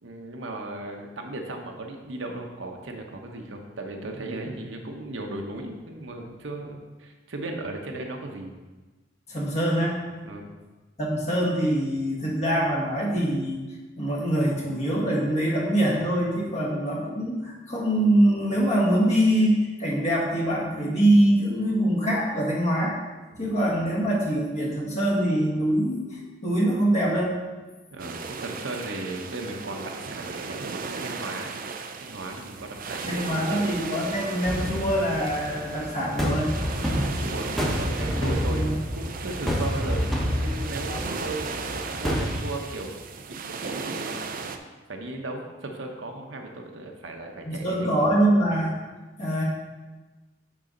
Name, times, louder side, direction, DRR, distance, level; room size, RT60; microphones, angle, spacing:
voice 1, 0.0-8.5 10.2-10.5 27.9-30.7 31.0-31.5 32.0-33.7 36.9-37.5 37.8-38.7 38.9-44.2 44.9-48.1, right 2 dB, 75° right, 2 dB, 0.9 m, -36 dB
voice 2, 9.3-10.0 11.0-13.6 14.0-23.0 23.3-27.3 33.1-36.5 36.8-37.2 38.2-38.7 40.8-41.0 47.4-48.7 49.2-49.4, right 1 dB, 35° left, -3 dB, 1.7 m, -24 dB
sound 1, 28.0-44.6, right 4 dB, 50° right, 0.5 m, -36 dB
sound 2, 34.5-42.4, equal, ahead, 1.1 m, -29 dB
10.0 x 4.2 x 3.9 m, 1.2 s
head